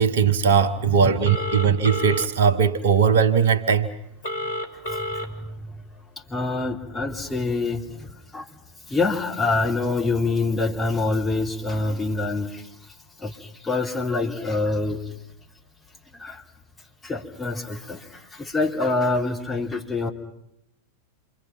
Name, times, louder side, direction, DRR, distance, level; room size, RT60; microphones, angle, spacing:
voice 1, 0.0-3.9, right 6 dB, 60° right, 9 dB, 1.4 m, -19 dB
Telephone, 1.2-2.3 4.2-5.3, left 1 dB, 60° left, 2.8 m, -29 dB
voice 2, 4.8-5.7 6.3-8.5 8.8-15.1 16.1-16.4 17.0-20.1, left 3 dB, 15° left, 0 dB, 3.4 m, -26 dB
27.5 x 24.5 x 6.1 m, 0.80 s
figure-of-eight pair, 90°, 0 cm